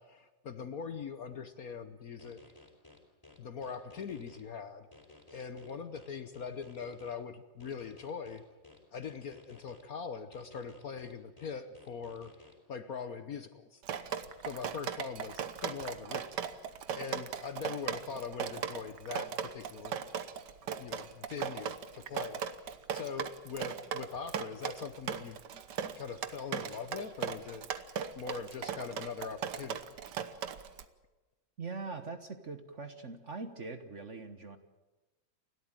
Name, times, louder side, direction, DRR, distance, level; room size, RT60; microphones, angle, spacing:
voice 1, 0.0-2.4 3.4-4.9 5.3-8.4 8.9-13.8 14.4-16.7 16.9-20.0 20.8-25.6 26.0-27.7 28.1-30.0, left 6 dB, 55° left, 10 dB, 1.2 m, -42 dB
sound 1, 2.2-4.4 4.9-7.1 7.6-9.8 10.3-12.5, left 2 dB, 10° left, 3.9 m, -56 dB
Drip, 13.8-30.8, right 8 dB, 60° right, 1.6 m, -38 dB
voice 2, 31.6-34.6, right 4 dB, 40° right, 8 dB, 1.4 m, -42 dB
29.5 x 13.0 x 9.0 m, 1.1 s
omnidirectional pair, 2.2 m